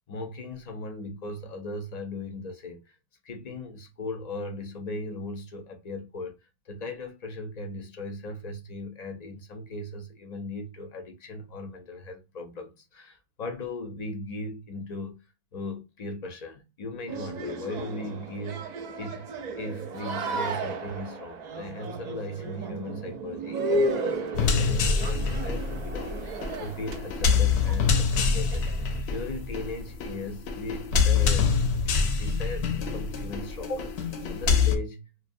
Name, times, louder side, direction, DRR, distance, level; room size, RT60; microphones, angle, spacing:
voice 1, 0.1-3.0 3.2-6.3 6.7-15.2 15.5-19.3 19.6-35.1, left 2 dB, 50° left, 0.5 m, -38 dB
sound 1, 17.1-29.0, right 2 dB, 55° right, 0.5 m, -34 dB
sound 2, 24.3-34.8, left 5 dB, 85° left, 0.8 m, -25 dB
2.5 x 2.1 x 2.5 m
omnidirectional pair, 1.1 m